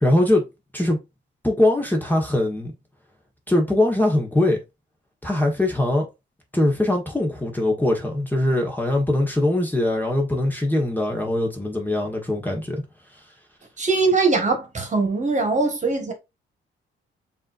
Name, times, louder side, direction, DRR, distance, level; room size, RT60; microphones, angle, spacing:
voice 1, 0.0-0.4 0.7-1.0 1.4-2.7 3.5-4.6 5.2-6.1 6.5-12.8, left 1 dB, 10° left, 1.3 m, -21 dB
voice 2, 13.8-16.1, right 3 dB, 35° right, 1.5 m, -21 dB
7.1 x 2.8 x 2.5 m
cardioid pair, 90°, 20 cm